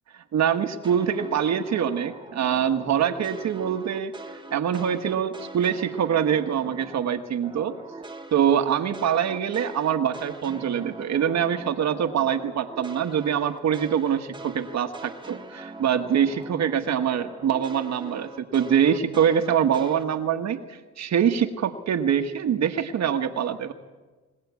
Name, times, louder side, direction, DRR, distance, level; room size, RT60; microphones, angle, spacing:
voice 1, 0.3-4.1 4.5-7.7 8.3-23.7, right 8 dB, 65° right, 7 dB, 1.5 m, -24 dB
sound 1, 0.8-7.1 7.4-16.7 17.0-20.0, right 2 dB, 15° right, 1.8 m, -42 dB
22.0 x 17.5 x 8.3 m, 1.3 s
cardioid pair, 90°, 30 cm